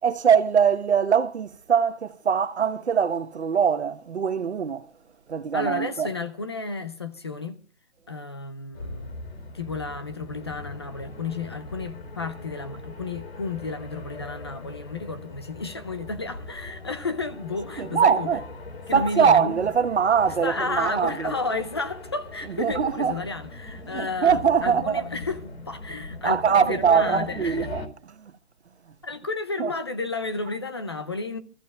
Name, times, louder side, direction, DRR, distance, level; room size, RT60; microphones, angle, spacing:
voice 1, 0.0-4.9 5.3-6.1 17.8-18.4 18.9-21.3 22.6-23.2 23.9-25.0 26.2-27.8 29.6-29.7, right 7 dB, 80° right, 1.2 m, -22 dB
voice 2, 5.5-7.6 8.1-9.2 9.5-18.3 18.9-19.6 20.4-27.7 29.0-31.4, left 3 dB, 25° left, 0.6 m, -32 dB
sound 1, 8.7-27.9, left 2 dB, 65° left, 3.4 m, -40 dB
27.0 x 14.5 x 2.4 m
hypercardioid pair, 170°, 33 cm